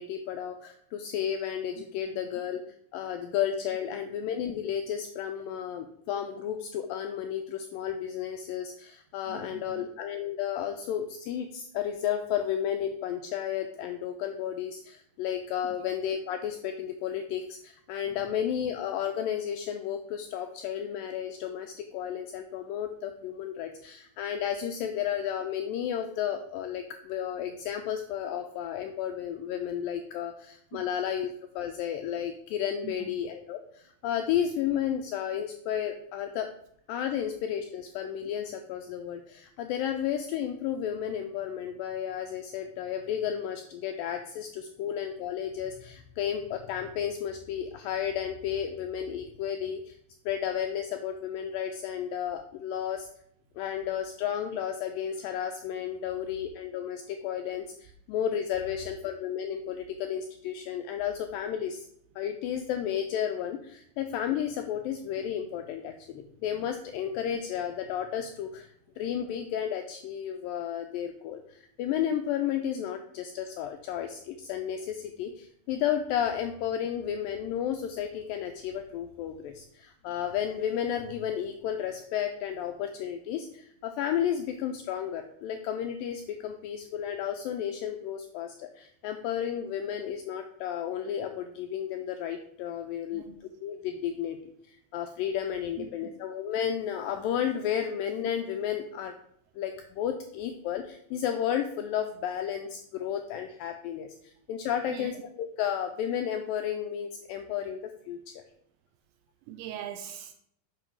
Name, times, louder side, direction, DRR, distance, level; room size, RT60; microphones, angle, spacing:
voice 1, 0.0-2.6 2.9-36.5 36.9-50.0 50.3-53.1 53.6-61.9 62.2-68.7 69.0-94.4 94.7-99.1 99.6-107.8 108.1-108.3, left 9 dB, 85° left, 5 dB, 2.0 m, -32 dB
voice 2, 9.3-9.9 30.7-30.8 32.8-32.9 93.1-93.4 95.8-96.1 104.9-105.1 109.5-110.3, right 10 dB, 90° right, 6 dB, 2.7 m, -41 dB
7.9 x 5.6 x 4.6 m, 0.70 s
omnidirectional pair, 4.5 m